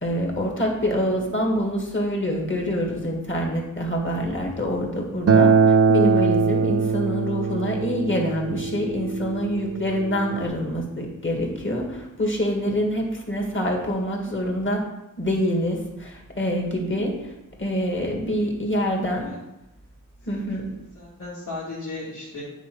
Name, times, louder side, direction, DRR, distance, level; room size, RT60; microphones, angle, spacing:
voice 1, 0.0-14.8 15.2-17.3 17.6-19.3 20.3-20.7, equal, 35° left, 0 dB, 1.9 m, -26 dB
Acoustic guitar, 5.3-10.5, right 5 dB, 45° right, 0.6 m, -21 dB
voice 2, 20.2-22.4, left 3 dB, 70° left, -10 dB, 2.6 m, -37 dB
9.2 x 4.1 x 4.6 m, 0.92 s
wide cardioid pair, 55°, 34 cm